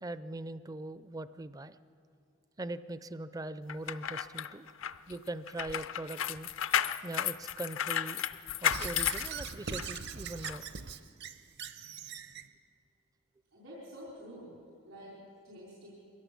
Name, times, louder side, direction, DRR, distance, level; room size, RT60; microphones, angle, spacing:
voice 1, 0.0-1.8 2.6-4.7 5.1-6.5 7.0-8.2 8.6-10.7, right 2 dB, 20° right, 13 dB, 0.4 m, -41 dB
sound 1, 3.7-10.0 10.4-10.6, left 10 dB, 70° left, 0.5 m, -33 dB
Squeak / Writing, 8.7-12.5, right 6 dB, 55° right, 0.8 m, -41 dB
voice 2, 13.5-14.6 14.8-15.9, equal, 85° right, -5 dB, 4.5 m, -48 dB
23.5 x 17.0 x 6.9 m, 2.4 s
head